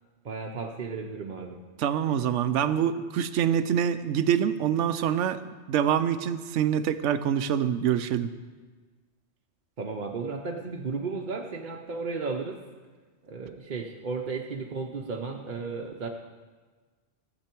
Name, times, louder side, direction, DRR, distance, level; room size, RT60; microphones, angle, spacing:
voice 1, 0.2-1.6 9.8-12.6 13.2-16.1, right 4 dB, 45° right, 1 dB, 0.8 m, -34 dB
voice 2, 1.8-5.4 5.7-8.3, right 9 dB, 90° right, 12 dB, 0.9 m, -25 dB
15.5 x 7.9 x 4.5 m, 1.4 s
omnidirectional pair, 1.2 m